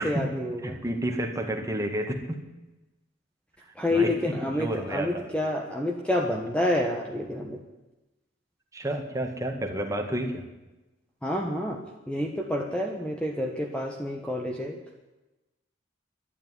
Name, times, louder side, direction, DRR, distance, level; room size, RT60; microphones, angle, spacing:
voice 1, 0.0-0.8 3.8-7.6 11.2-11.8 12.1-14.8, left 1 dB, 5° left, 1 dB, 1.2 m, -28 dB
voice 2, 0.6-2.4 3.9-5.2 8.7-10.4, right 1 dB, 15° right, 3 dB, 1.8 m, -30 dB
12.0 x 9.9 x 9.8 m, 1.0 s
head